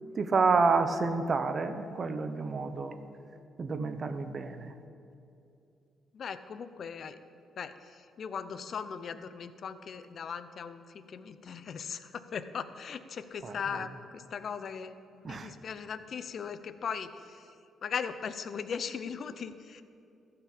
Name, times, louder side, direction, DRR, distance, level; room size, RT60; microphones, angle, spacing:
voice 1, 0.2-3.0 3.6-4.7 13.4-13.5 15.2-15.5, right 4 dB, 40° right, 9 dB, 0.9 m, -29 dB
voice 2, 6.1-7.2 7.6-17.5 17.8-19.8, left 6 dB, 55° left, 12 dB, 0.7 m, -39 dB
13.5 x 5.9 x 8.5 m, 2.6 s
cardioid pair, 90°, 0 cm